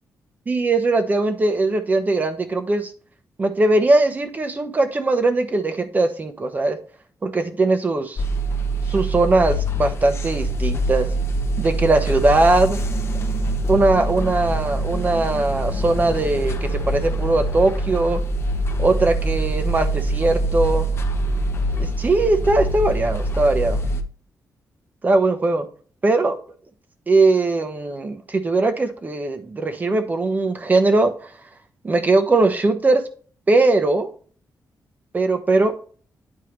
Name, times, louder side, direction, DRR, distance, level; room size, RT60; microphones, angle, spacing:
voice 1, 0.5-2.9 3.4-6.8 7.2-8.2 8.9-11.1 11.6-12.8 13.7-18.2 18.8-20.9 21.8-23.8 25.0-25.6 26.0-26.4 27.1-31.1 31.8-33.0 33.5-34.1 35.1-35.7, right 2 dB, 25° right, 8 dB, 1.0 m, -20 dB
sound 1, 8.2-24.0, right 1 dB, 40° left, 0.8 m, -24 dB
9.7 x 4.6 x 3.3 m, 0.42 s
wide cardioid pair, 160°, 7 cm